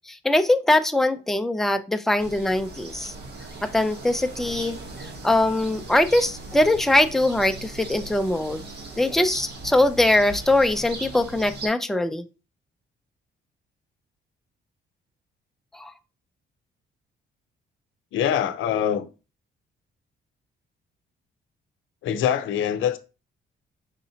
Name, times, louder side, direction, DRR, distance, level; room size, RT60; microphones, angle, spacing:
voice 1, 0.1-3.1 3.6-4.8 5.2-8.6 9.0-12.2 15.7-15.9, left 1 dB, ahead, 0.4 m, -22 dB
sound 1, 2.2-11.7, right 2 dB, 55° right, 1.1 m, -38 dB
voice 2, 18.1-19.1 22.0-23.0, left 9 dB, 80° left, 0.6 m, -24 dB
5.0 x 2.7 x 2.7 m
cardioid pair, 90°, 20 cm